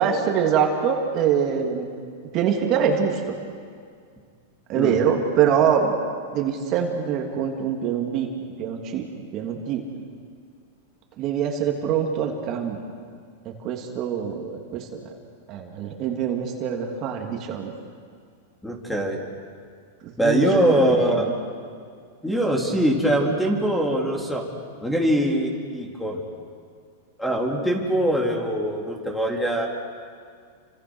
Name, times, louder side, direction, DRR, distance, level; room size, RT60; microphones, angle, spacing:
voice 1, 0.0-1.9 2.3-3.3 4.7-5.9 6.3-9.8 11.2-12.8 13.4-15.1 15.5-17.7 20.0-21.3, right 7 dB, 40° right, 2 dB, 3.1 m, -24 dB
voice 2, 18.6-19.2 20.2-21.3 22.2-24.4 24.8-26.2 27.2-29.7, right 1 dB, 5° left, 0 dB, 3.8 m, -22 dB
30.0 x 26.0 x 6.5 m, 2.1 s
hypercardioid pair, 135°, 0 cm